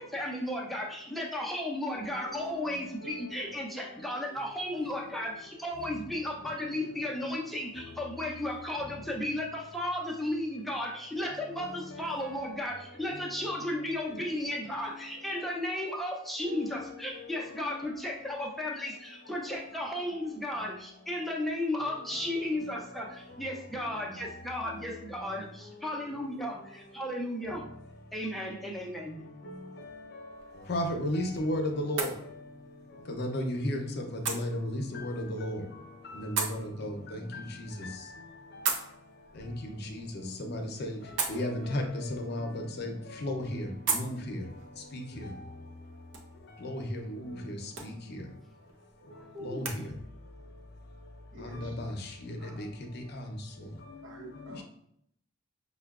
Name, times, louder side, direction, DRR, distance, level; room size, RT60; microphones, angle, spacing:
voice 1, 0.0-27.6 28.1-29.3 49.2-49.8, left 1 dB, ahead, -2 dB, 0.5 m, -34 dB
sound 1, 30.3-49.8, right 5 dB, 65° right, 0.6 m, -41 dB
voice 2, 30.7-32.1 33.2-35.6 36.1-37.9 39.4-41.0 41.3-42.9 43.2-44.4 44.9-45.3 46.6-47.9 49.4-49.7 51.4-51.9 52.4-52.7 53.1-53.3, left 1 dB, 55° left, 4 dB, 0.6 m, -34 dB
voice 3, 51.3-51.8 52.4-52.8 54.0-54.6, right 1 dB, 85° right, 0 dB, 0.9 m, -48 dB
5.5 x 2.2 x 2.3 m, 0.70 s
head